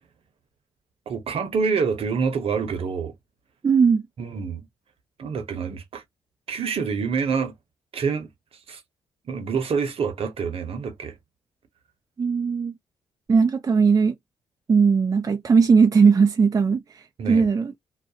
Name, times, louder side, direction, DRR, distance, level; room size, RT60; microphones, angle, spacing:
voice 1, 1.1-3.1 4.2-4.6 5.2-6.0 6.5-7.5 7.9-8.3 8.7-8.8 9.3-11.1 17.2-17.5, right 5 dB, 60° right, 0.9 m, -26 dB
voice 2, 3.6-4.0 12.2-12.7 13.3-14.1 14.7-17.8, right 5 dB, 30° right, 0.4 m, -18 dB
2.4 x 2.1 x 2.7 m
hypercardioid pair, 45°, 11 cm